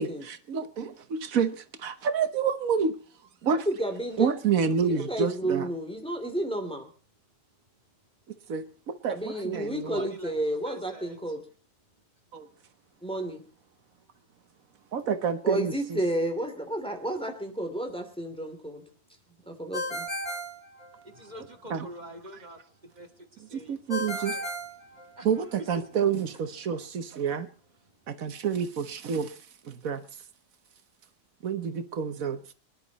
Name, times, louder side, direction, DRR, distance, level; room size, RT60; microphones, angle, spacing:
voice 1, 0.0-3.0 3.4-3.7 4.2-5.7 8.5-10.1 12.3-12.5 14.9-16.0 21.7-21.9 23.4-24.4 25.2-27.5 28.1-29.4 29.6-30.0 31.4-32.4, right 6 dB, 85° right, 1.5 m, -29 dB
voice 2, 3.7-4.3 4.9-6.9 9.1-11.4 13.0-13.4 15.4-18.8 19.5-20.1, right 1 dB, 5° left, 2.9 m, -31 dB
voice 3, 9.3-10.4 10.7-11.2 21.0-22.6 23.0-24.5 25.1-25.3, right 1 dB, 30° right, 2.3 m, -46 dB
Ringtone, 19.7-21.4 23.9-25.6, equal, 25° left, 2.8 m, -35 dB
24.5 x 11.0 x 4.1 m
omnidirectional pair, 1.4 m